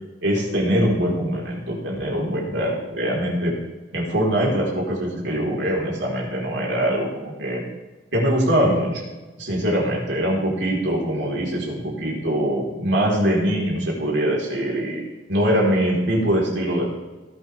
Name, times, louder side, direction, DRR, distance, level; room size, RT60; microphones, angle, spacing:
voice 1, 0.2-3.5 3.9-7.6 8.1-9.0 9.4-15.0 15.3-16.8, equal, 80° right, -3 dB, 4.2 m, -23 dB
18.5 x 8.6 x 3.5 m, 1.2 s
head